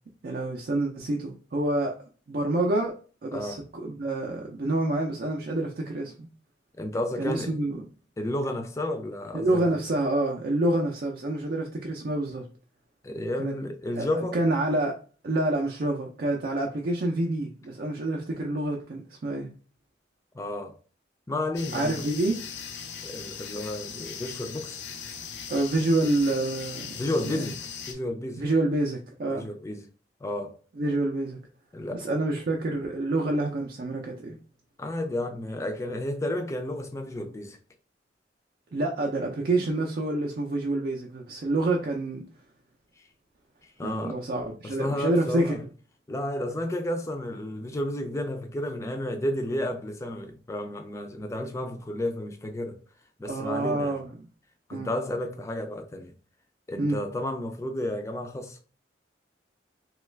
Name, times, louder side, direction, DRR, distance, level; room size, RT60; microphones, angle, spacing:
voice 1, 0.2-1.9 2.3-2.9 3.2-3.6 3.8-6.3 7.2-7.8 9.3-12.5 13.4-13.5 14.0-14.1 14.3-15.0 15.2-19.5 21.7-22.4 25.5-27.0 27.2-27.5 28.4-29.5 30.8-31.4 31.9-34.4 38.7-42.2 43.8-45.5 53.3-54.3 54.7-54.9 56.8-57.0, right 2 dB, 50° right, 0.4 m, -27 dB
voice 2, 3.3-3.6 6.8-7.5 8.2-9.8 13.0-14.4 20.3-20.8 21.3-22.0 23.0-24.8 27.0-28.4 29.3-29.9 30.2-30.6 31.7-32.1 34.8-37.6 43.8-44.2 44.6-45.6 46.1-52.8 53.2-54.0 54.7-56.2 56.7-58.6, left 1 dB, 15° left, 0.4 m, -32 dB
sound 1, 21.6-27.9, left 7 dB, 70° left, 0.5 m, -39 dB
3.0 x 2.3 x 3.2 m
head